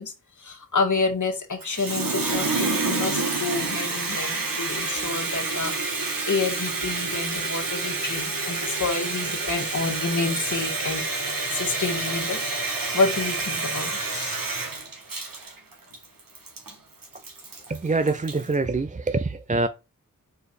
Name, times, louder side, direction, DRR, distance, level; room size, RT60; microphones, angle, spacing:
voice 1, 0.0-12.4 12.9-14.4, left 4 dB, 55° left, 1.8 m, -29 dB
Water tap faucet, 1.6-18.5, right 3 dB, 70° right, 1.9 m, -28 dB
voice 2, 17.7-19.7, right 3 dB, 20° right, 0.5 m, -25 dB
5.1 x 4.6 x 4.3 m
cardioid pair, 45°, 35 cm